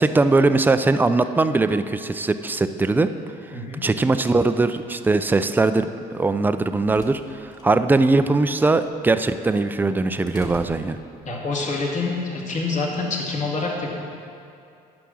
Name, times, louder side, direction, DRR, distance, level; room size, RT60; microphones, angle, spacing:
voice 1, 0.0-3.1 3.8-11.0, right 3 dB, 10° right, 10 dB, 0.4 m, -20 dB
voice 2, 3.5-3.8 11.3-13.9, left 3 dB, 45° left, -2 dB, 2.0 m, -26 dB
sound 1, 6.7-11.6, left 1 dB, 25° left, 1.4 m, -44 dB
10.0 x 5.8 x 6.2 m, 2.5 s
cardioid pair, 110°, 17 cm